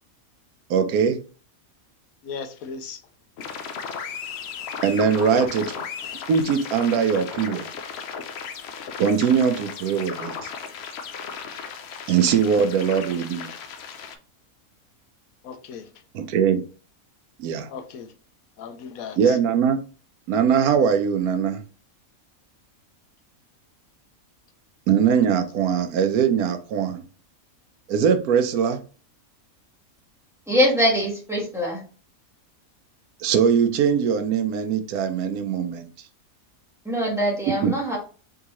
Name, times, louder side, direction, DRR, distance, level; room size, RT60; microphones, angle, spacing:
voice 1, 0.7-1.2 4.8-5.7 6.3-7.7 9.0-10.5 12.1-13.5 16.1-16.6 17.4-17.7 19.2-19.8 20.3-21.6 24.9-27.0 27.9-28.8 33.2-35.9 37.6-37.7, right 7 dB, 85° right, 1.1 m, -21 dB
voice 2, 2.2-3.0 15.4-16.0 17.7-18.1 18.6-19.4, left 6 dB, 80° left, 1.1 m, -37 dB
sound 1, 3.4-14.2, left 6 dB, 60° left, 0.7 m, -35 dB
voice 3, 30.5-31.8 36.8-38.0, equal, ahead, 1.4 m, -22 dB
3.8 x 3.7 x 2.9 m
omnidirectional pair, 1.5 m